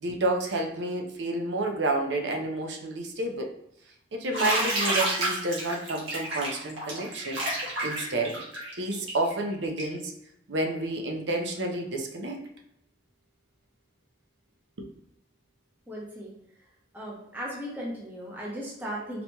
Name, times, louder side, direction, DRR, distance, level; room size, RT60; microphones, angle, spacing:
voice 1, 0.0-3.5 4.1-7.4 7.8-8.4 8.8-10.1 10.5-12.4 14.8-14.9, right 2 dB, 70° right, 2 dB, 0.6 m, -30 dB
Bathtub (filling or washing), 4.3-10.0, right 1 dB, 90° right, 1.3 m, -29 dB
voice 2, 15.9-16.3 16.9-19.2, equal, 10° right, -5 dB, 0.8 m, -36 dB
4.1 x 2.8 x 2.2 m, 0.78 s
head